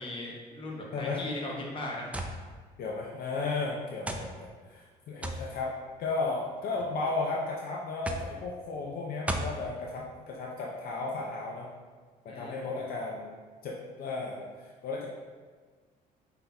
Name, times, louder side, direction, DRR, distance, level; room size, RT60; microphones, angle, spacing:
voice 1, 0.0-2.1 12.3-12.6, left 1 dB, 30° left, -2 dB, 1.0 m, -38 dB
voice 2, 0.9-1.2 2.8-5.7 6.0-11.7 12.2-15.1, left 3 dB, 60° left, -2 dB, 0.6 m, -34 dB
sound 1, 2.1-2.4 3.3-3.4 4.1-4.3 5.2-5.5 6.5-6.9 8.0-8.3 9.3-9.6, right 1 dB, 10° right, 0.3 m, -33 dB
5.4 x 3.8 x 2.3 m, 1.5 s
cardioid pair, 110°, 17 cm